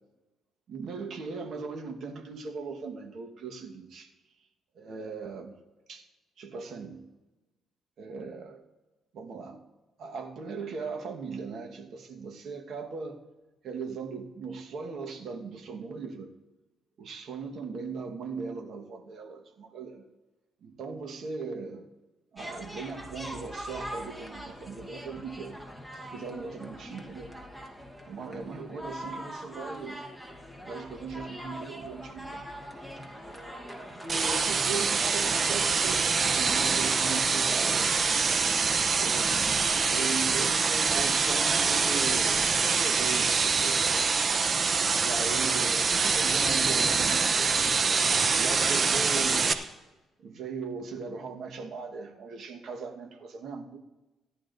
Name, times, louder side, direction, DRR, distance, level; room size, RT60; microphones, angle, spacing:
voice 1, 0.7-4.1 4.7-5.6 5.9-6.1 6.4-7.1 8.0-8.6 9.1-9.6 10.0-13.2 13.6-16.3 17.0-20.0 20.6-21.9 22.3-25.6 26.0-27.3 28.1-30.0 30.6-32.5 34.0-38.6 39.0-39.4 39.9-44.0 45.0-47.7 48.3-49.8 50.2-53.8, right 5 dB, 65° right, 3 dB, 1.3 m, -38 dB
sound 1, 22.4-38.9, equal, 5° right, 1.2 m, -42 dB
sound 2, 34.1-49.5, right 5 dB, 40° right, 0.7 m, -25 dB
17.0 x 11.0 x 2.6 m, 1.1 s
cardioid pair, 90°, 0 cm